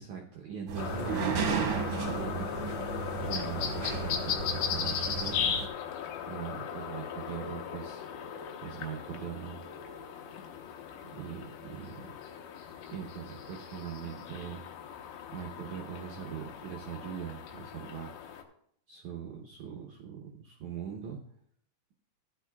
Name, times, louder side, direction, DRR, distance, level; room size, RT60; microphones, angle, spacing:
voice 1, 0.0-2.5 3.2-5.5 6.3-8.0 8.6-9.6 11.0-12.1 12.9-14.6 15.3-18.1 18.9-21.2, right 8 dB, 85° right, 1 dB, 1.7 m, -41 dB
sound 1, 0.7-5.7, right 6 dB, 60° right, 1.7 m, -34 dB
sound 2, 0.8-18.4, left 8 dB, 85° left, 3.2 m, -38 dB
15.0 x 10.5 x 2.3 m, 0.65 s
omnidirectional pair, 4.8 m